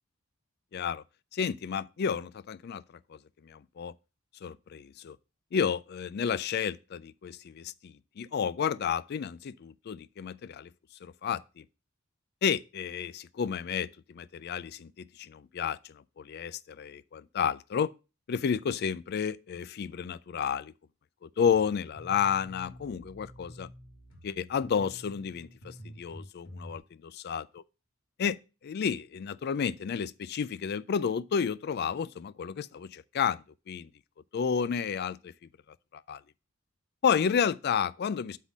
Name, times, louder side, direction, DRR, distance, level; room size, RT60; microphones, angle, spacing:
voice 1, 0.7-1.0 1.3-2.8 3.1-3.2 3.4-3.9 4.4-5.2 5.5-10.7 11.0-11.6 12.4-17.9 18.3-20.7 21.2-23.7 24.2-27.6 28.2-28.4 28.6-33.9 34.3-35.3 35.9-36.2 37.0-38.4, left 7 dB, 50° left, 0.3 m, -31 dB
sound 1, 21.4-26.8, equal, 70° left, 1.9 m, -49 dB
8.0 x 3.7 x 6.1 m
head